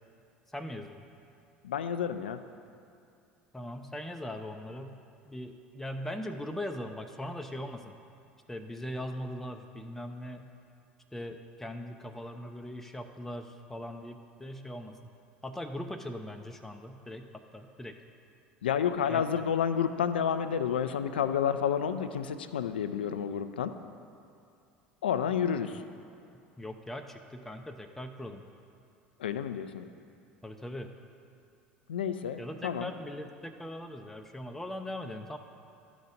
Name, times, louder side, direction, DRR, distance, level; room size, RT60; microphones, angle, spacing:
voice 1, 0.5-1.1 3.5-5.0 5.3-8.0 8.5-10.4 11.1-15.1 15.4-18.0 19.1-19.4 25.7-25.8 26.6-28.5 30.4-30.9 32.4-35.4, left 1 dB, 5° left, 5 dB, 0.5 m, -40 dB
voice 2, 1.6-2.4 18.6-23.7 25.0-25.7 29.2-29.9 31.9-32.9, left 8 dB, 75° left, 11 dB, 0.3 m, -30 dB
12.0 x 4.0 x 5.0 m, 2.5 s
figure-of-eight pair, 70°, 5 cm